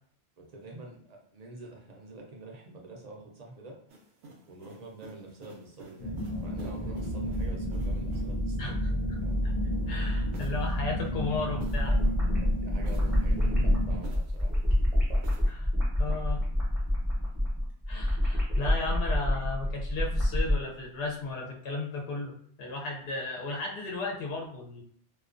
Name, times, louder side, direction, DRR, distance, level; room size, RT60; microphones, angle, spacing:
voice 1, 0.4-3.8 4.5-8.8 9.2-9.3 11.9-12.1 12.5-14.5, right 2 dB, 45° right, -1 dB, 0.6 m, -47 dB
sound 1, 3.9-8.5 10.3-12.3 12.8-14.6 15.2-15.5, right 2 dB, 80° right, 0.9 m, -51 dB
sound 2, 6.0-14.0, equal, 40° left, 0.4 m, -31 dB
voice 2, 9.9-11.9 15.5-15.7 16.0-16.4 17.9-22.3 22.6-24.8, left 3 dB, 65° left, -1 dB, 0.8 m, -35 dB
sound 3, 11.6-20.6, left 1 dB, ahead, 0.6 m, -27 dB
2.3 x 2.2 x 2.4 m, 0.62 s
omnidirectional pair, 1.1 m